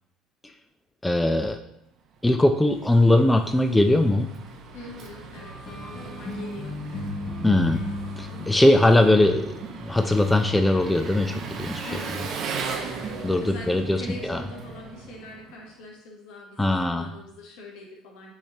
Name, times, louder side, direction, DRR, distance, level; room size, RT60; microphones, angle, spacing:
voice 1, 1.0-1.6 2.2-4.3 7.4-7.9 8.2-9.6 9.8-11.9 13.2-14.0 14.3-14.4 16.6-17.1, left 1 dB, 10° left, 5 dB, 0.4 m, -20 dB
Engine, 2.2-15.7, right 5 dB, 55° right, 0.6 m, -38 dB
voice 2, 4.7-7.2 8.3-8.6 11.8-12.4 12.8-18.3, left 2 dB, 75° left, -1 dB, 1.1 m, -43 dB
sound 1, 5.4-9.5, left 2 dB, 35° left, 1.0 m, -35 dB
5.4 x 3.2 x 2.9 m, 0.79 s
hypercardioid pair, 70°, 0 cm